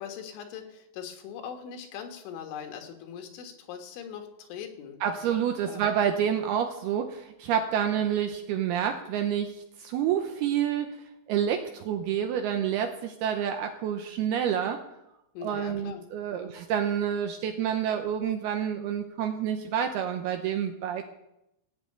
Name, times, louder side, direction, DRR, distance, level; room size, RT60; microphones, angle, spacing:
voice 1, 0.0-5.0 5.7-5.8 15.4-16.5, left 8 dB, 80° left, 4 dB, 4.1 m, -41 dB
voice 2, 5.0-10.9 11.3-14.8 15.4-21.1, right 9 dB, 85° right, 6 dB, 2.2 m, -28 dB
16.5 x 6.5 x 8.7 m, 0.86 s
omnidirectional pair, 5.6 m